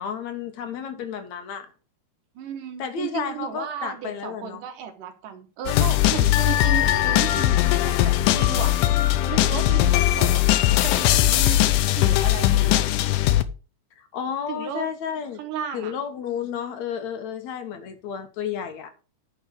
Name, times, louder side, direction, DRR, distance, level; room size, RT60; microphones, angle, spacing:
voice 1, 0.0-1.7 2.8-4.6 14.0-15.4 15.7-18.9, left 7 dB, 65° left, 2.4 m, -32 dB
voice 2, 2.4-10.4 10.8-12.9 14.5-14.9 15.4-16.0, right 8 dB, 85° right, 3.1 m, -35 dB
sound 1, 5.7-13.4, left 14 dB, 90° left, 2.3 m, -20 dB
10.0 x 5.1 x 6.4 m
omnidirectional pair, 3.6 m